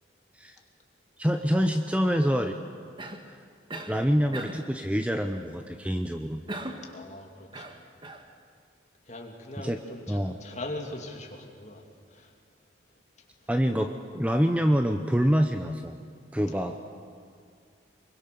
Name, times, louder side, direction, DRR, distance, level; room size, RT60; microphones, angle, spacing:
voice 1, 1.2-2.6 3.9-6.4 9.6-9.8 10.1-10.3 13.5-16.0 16.3-16.7, equal, 5° right, 6 dB, 0.7 m, -26 dB
Cough, 3.0-3.3 3.7-4.0 4.3-4.7 6.5-6.9 7.5-8.3, right 2 dB, 25° right, 1.5 m, -38 dB
voice 2, 6.8-7.8 9.0-12.3 13.2-13.5 16.4-16.8, left 2 dB, 35° left, 2 dB, 2.6 m, -41 dB
25.0 x 22.5 x 6.9 m, 2.2 s
head